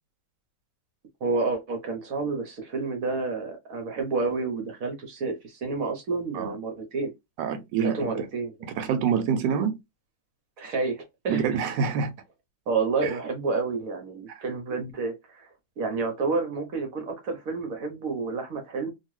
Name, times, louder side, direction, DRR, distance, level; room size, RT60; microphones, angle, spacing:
voice 1, 1.2-7.1 7.8-8.7 10.6-11.6 12.7-15.5 15.8-18.9, right 4 dB, 60° right, 1.0 m, -29 dB
voice 2, 7.4-8.1 8.8-9.7 11.3-12.1 13.0-13.1, right 7 dB, 75° right, 1.2 m, -26 dB
2.8 x 2.6 x 3.1 m
omnidirectional pair, 2.1 m